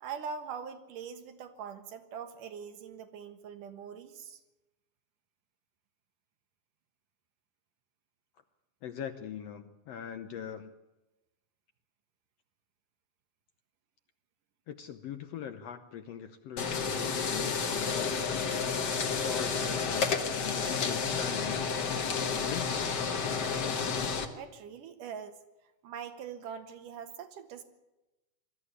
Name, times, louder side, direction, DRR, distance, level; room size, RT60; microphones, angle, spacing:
voice 1, 0.0-4.4 24.4-25.4 25.8-27.6, right 7 dB, 80° right, 7 dB, 3.0 m, -42 dB
voice 2, 8.8-10.7 14.7-22.9, left 9 dB, 70° left, 9 dB, 1.6 m, -42 dB
sound 1, 16.6-24.2, left 5 dB, 45° left, 1.5 m, -31 dB
21.0 x 13.5 x 9.8 m, 1.0 s
omnidirectional pair, 3.7 m